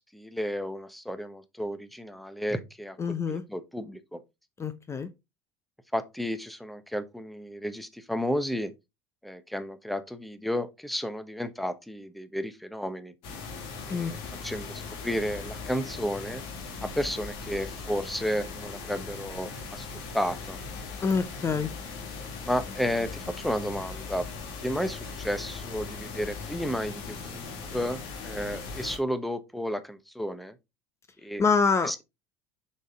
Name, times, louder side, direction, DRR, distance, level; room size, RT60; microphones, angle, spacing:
voice 1, 0.0-4.2 5.9-8.7 9.2-13.1 13.9-16.4 16.8-19.9 20.1-20.6 22.4-24.3 24.6-27.4 27.7-30.5 31.2-31.4 31.8-32.0, equal, ahead, 0.9 m, -32 dB
voice 2, 3.0-3.4 4.6-5.1 13.9-14.1 21.0-21.7 31.4-32.0, left 5 dB, 25° left, 0.7 m, -26 dB
sound 1, 13.2-29.0, left 4 dB, 60° left, 1.9 m, -39 dB
6.3 x 4.2 x 3.6 m
hypercardioid pair, 75°, 10 cm